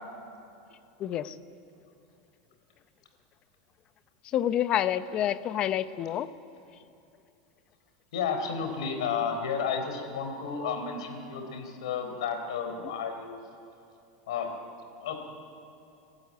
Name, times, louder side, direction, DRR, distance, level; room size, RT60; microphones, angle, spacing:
voice 1, 1.0-1.3 4.3-6.3, left 11 dB, 30° left, 13 dB, 0.7 m, -28 dB
voice 2, 8.1-13.3 14.3-14.5 15.0-15.1, left 6 dB, 90° left, 5 dB, 3.8 m, -32 dB
29.5 x 12.5 x 9.5 m, 2.7 s
supercardioid pair, 155°, 3 cm